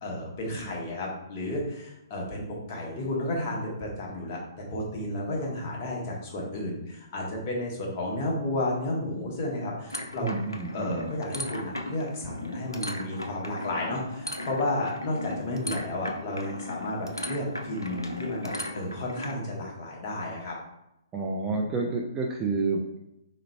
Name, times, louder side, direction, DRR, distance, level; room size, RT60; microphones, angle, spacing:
voice 1, 0.0-10.3 10.7-20.5, left 1 dB, 35° left, -2 dB, 0.9 m, -32 dB
sound 1, 9.9-19.4, left 1 dB, 85° left, 0.4 m, -37 dB
voice 2, 10.2-11.1 21.1-23.1, right 3 dB, 15° right, 0 dB, 0.3 m, -29 dB
3.5 x 3.0 x 2.2 m, 0.86 s
figure-of-eight pair, 125°, 2 cm